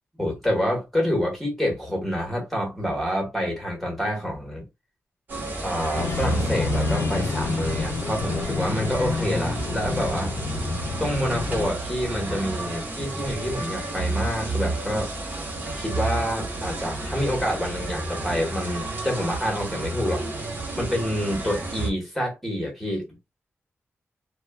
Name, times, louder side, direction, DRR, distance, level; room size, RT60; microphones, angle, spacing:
voice 1, 0.2-4.7 5.6-10.4 11.0-15.1 15.7-20.2 20.8-23.1, equal, ahead, 1.4 m, -27 dB
sound 1, 5.3-21.9, right 2 dB, 45° right, 1.1 m, -31 dB
sound 2, 5.9-11.7, left 4 dB, 70° left, 0.4 m, -29 dB
4.2 x 2.3 x 2.2 m
wide cardioid pair, 175°, 5 cm